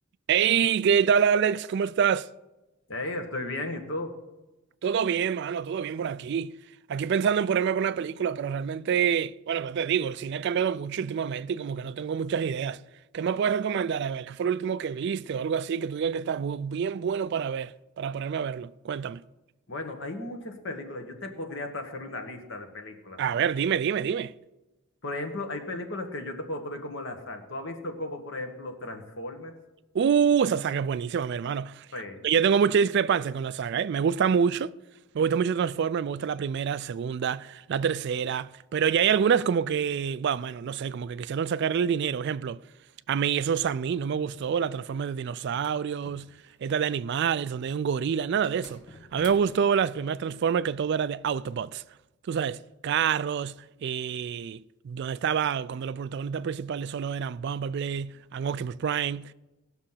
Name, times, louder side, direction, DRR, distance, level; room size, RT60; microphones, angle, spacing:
voice 1, 0.3-2.3 4.8-6.5 6.9-12.8 13.1-19.2 23.2-24.3 29.9-31.9 32.2-34.7 35.1-42.6 43.1-46.3 46.6-48.8 49.1-51.8 52.3-59.3, right 7 dB, 55° right, 0.3 m, -27 dB
voice 2, 2.9-4.1 19.7-23.2 25.0-29.5 31.9-32.2, left 2 dB, 60° left, 1.5 m, -35 dB
sound 1, 45.4-46.9 48.4-49.8, left 3 dB, 80° left, 1.9 m, -50 dB
18.0 x 6.3 x 5.7 m
head